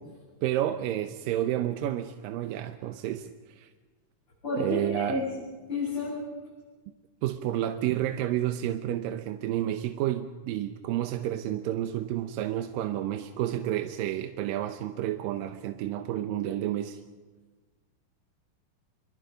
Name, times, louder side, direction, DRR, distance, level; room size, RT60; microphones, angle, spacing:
voice 1, 0.4-3.3 3.6-3.7 4.6-5.2 7.2-17.0, right 12 dB, 85° right, 8 dB, 2.5 m, -30 dB
voice 2, 4.4-5.2 5.7-6.2, left 2 dB, 30° left, -7 dB, 8.5 m, -30 dB
29.5 x 23.0 x 5.2 m, 1.3 s
omnidirectional pair, 3.9 m